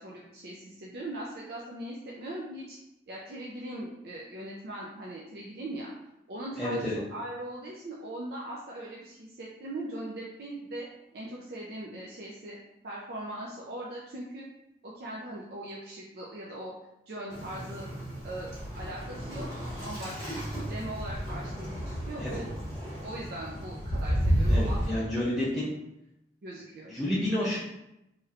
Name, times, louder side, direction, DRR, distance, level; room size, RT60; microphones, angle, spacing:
voice 1, 0.0-2.8 3.1-5.9 6.3-10.9 11.1-12.6 12.8-14.5 14.8-16.7 17.1-17.9 18.2-18.5 18.8-19.5 19.8-22.5 23.0-25.0 26.4-26.9, right 1 dB, 60° right, -4 dB, 0.4 m, -40 dB
voice 2, 6.6-7.0 22.2-22.4 24.5-25.7 26.9-27.6, left 1 dB, ahead, -10 dB, 0.5 m, -30 dB
Waves surf, 17.3-24.9, equal, 15° right, 1.5 m, -32 dB
3.1 x 3.0 x 2.4 m, 0.87 s
head